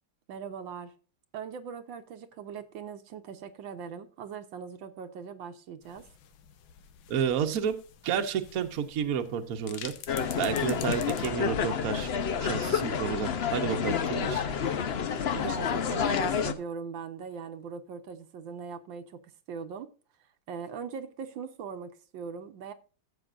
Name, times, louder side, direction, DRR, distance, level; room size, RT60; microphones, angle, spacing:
voice 1, 0.3-0.9 1.3-6.1 15.3-19.2 19.5-19.9 20.5-22.7, right 6 dB, 80° right, 1.5 m, -40 dB
sound 1, 5.8-11.3, left 9 dB, 90° left, 1.7 m, -47 dB
voice 2, 7.1-7.8 8.0-9.9 10.4-12.1 12.4-14.4, right 7 dB, 55° right, 1.2 m, -30 dB
sound 2, 10.1-16.5, left 7 dB, 70° left, 0.6 m, -29 dB
14.5 x 7.7 x 2.5 m
omnidirectional pair, 2.1 m